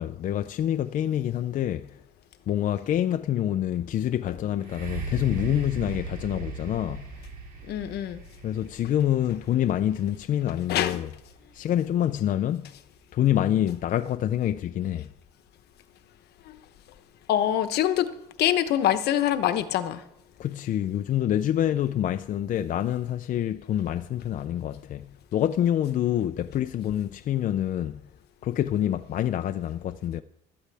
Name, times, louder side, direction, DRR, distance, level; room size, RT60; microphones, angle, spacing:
voice 1, 0.0-2.0 2.5-7.0 8.4-11.1 11.5-12.7 13.1-15.1 20.4-28.0 28.4-30.2, left 11 dB, 50° left, 0.5 m, -26 dB
sound 1, 4.6-12.3 13.0-13.1, right 3 dB, 55° right, 2.6 m, -39 dB
voice 2, 7.7-8.2 10.7-11.0 16.5-16.6 17.3-18.1 18.4-20.0, left 11 dB, 75° left, 1.0 m, -24 dB
16.0 x 12.5 x 3.4 m
cardioid pair, 110°, 17 cm